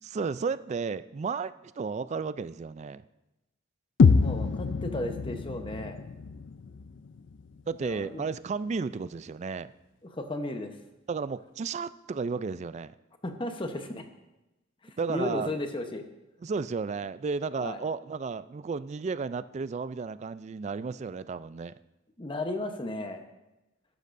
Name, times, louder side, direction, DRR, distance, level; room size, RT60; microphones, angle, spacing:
voice 1, 0.0-3.0 7.7-9.7 11.1-12.9 15.0-15.5 16.4-21.7, right 5 dB, 35° right, 15 dB, 0.3 m, -33 dB
sound 1, 4.0-8.0, left 5 dB, 65° left, 0.4 m, -26 dB
voice 2, 4.0-6.0 7.8-8.3 10.0-10.8 13.2-14.1 14.8-16.1 17.6-17.8 22.2-23.2, left 1 dB, 25° left, 6 dB, 0.9 m, -35 dB
13.5 x 12.0 x 2.6 m, 0.98 s
head